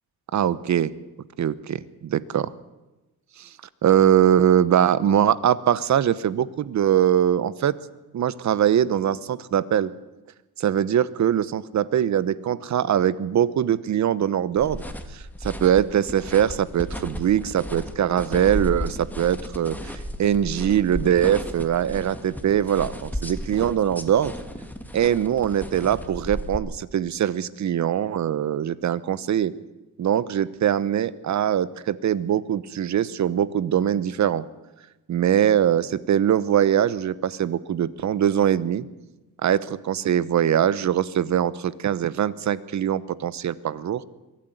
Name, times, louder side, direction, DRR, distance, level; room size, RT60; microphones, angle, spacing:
voice 1, 0.3-0.9 1.4-2.4 3.4-3.5 3.8-7.8 8.1-9.9 10.6-14.8 15.1-24.3 24.9-29.5 30.0-34.4 35.1-38.9 39.4-44.0, right 10 dB, 50° right, 17 dB, 1.0 m, -22 dB
sound 1, 14.6-26.6, equal, 5° left, 1.8 m, -34 dB
23.0 x 13.5 x 9.2 m, 1.1 s
cardioid pair, 115°, 37 cm